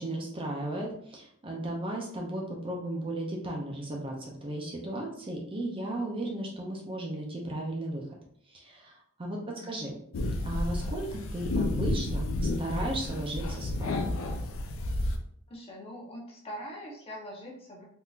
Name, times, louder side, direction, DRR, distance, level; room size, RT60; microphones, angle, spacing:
voice 1, 0.0-8.0 8.5-9.4 9.7-9.9 10.4-12.2 12.6-13.9, right 1 dB, 25° right, -1 dB, 0.5 m, -35 dB
voice 2, 9.4-9.7 15.5-17.8, equal, 25° left, -2 dB, 0.8 m, -43 dB
sound 1, 10.1-15.2, left 2 dB, 65° left, 0.4 m, -31 dB
3.6 x 2.8 x 2.4 m, 0.66 s
head